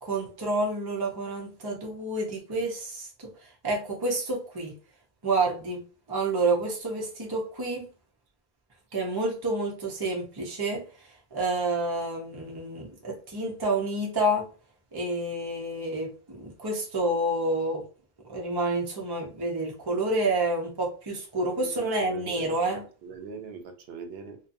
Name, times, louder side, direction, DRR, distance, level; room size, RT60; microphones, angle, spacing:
voice 1, 0.0-3.3 3.6-4.7 5.2-5.8 6.1-7.9 8.9-10.9 11.3-14.5 14.9-17.8 18.3-22.8, right 2 dB, 25° right, 0.6 m, -29 dB
voice 2, 21.6-24.4, right 5 dB, 80° right, 0.8 m, -41 dB
2.6 x 2.3 x 2.6 m
omnidirectional pair, 1.0 m